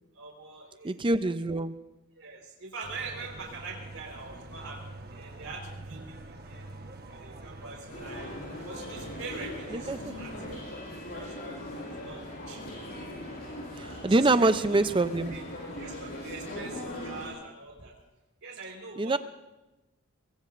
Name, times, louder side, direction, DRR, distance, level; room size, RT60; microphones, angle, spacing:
voice 1, 0.1-1.2 2.2-4.8 5.1-6.7 7.1-8.3 8.6-11.6 11.9-12.6 14.1-14.8 15.3-15.4 15.7-17.9 18.4-19.2, right 4 dB, 65° right, 0 dB, 4.4 m, -44 dB
voice 2, 0.8-1.7 9.7-10.1 13.8-15.4 19.0-19.2, right 2 dB, 20° right, 12 dB, 0.5 m, -25 dB
sound 1, 2.8-10.6, right 2 dB, 45° right, 1.2 m, -45 dB
sound 2, 7.9-17.3, left 1 dB, 45° left, 6.1 m, -40 dB
23.0 x 23.0 x 2.6 m, 1.0 s
head